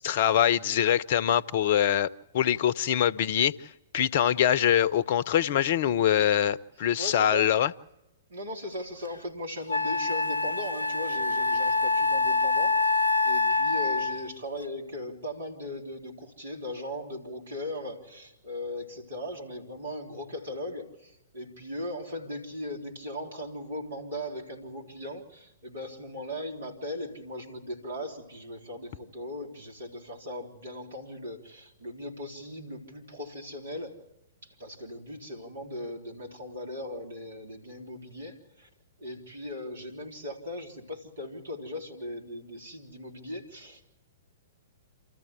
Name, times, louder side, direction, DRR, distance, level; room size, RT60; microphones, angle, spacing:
voice 1, 0.0-7.7, left 10 dB, 45° left, 0.7 m, -24 dB
voice 2, 7.0-7.5 8.3-34.0 34.4-38.7 39.0-43.9, left 1 dB, 65° right, 3.5 m, -38 dB
Wind instrument woodwind instrument, 9.0-9.1 9.7-14.3, left 3 dB, 80° left, 0.7 m, -26 dB
28.0 x 14.0 x 8.4 m
figure-of-eight pair, 110°, 0 cm